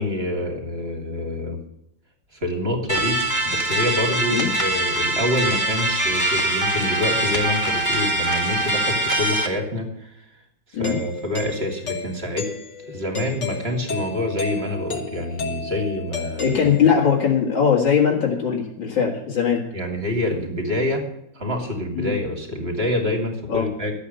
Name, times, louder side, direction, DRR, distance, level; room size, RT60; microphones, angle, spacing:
voice 1, 0.0-1.6 2.3-10.2 10.8-12.5 12.8-16.5 19.7-21.0 21.3-23.9, left 1 dB, 30° right, 3 dB, 2.8 m, -26 dB
sound 1, 2.9-9.5, right 2 dB, 10° left, 2.1 m, -23 dB
Doorbell, 10.8-17.2, left 3 dB, 65° left, 2.3 m, -33 dB
voice 2, 16.4-19.6 21.9-22.1 23.5-23.7, left 7 dB, 85° left, -3 dB, 2.8 m, -20 dB
12.5 x 8.5 x 6.7 m, 0.78 s
omnidirectional pair, 2.1 m